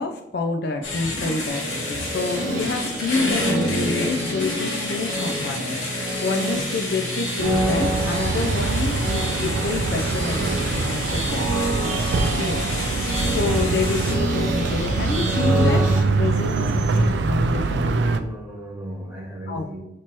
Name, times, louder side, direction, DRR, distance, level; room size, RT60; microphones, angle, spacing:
voice 1, 0.0-11.4 12.4-12.6 13.3-17.9 19.5-19.7, left 4 dB, 50° left, 4 dB, 0.4 m, -28 dB
sound 1, 0.8-14.1, left 2 dB, 75° left, 1.1 m, -31 dB
sound 2, 1.5-16.0, right 1 dB, 40° right, 0.9 m, -28 dB
sound 3, 7.4-18.2, right 3 dB, 60° right, 0.3 m, -23 dB
voice 2, 17.6-19.8, right 1 dB, 10° right, -6 dB, 1.3 m, -37 dB
5.9 x 2.9 x 2.9 m, 0.84 s
head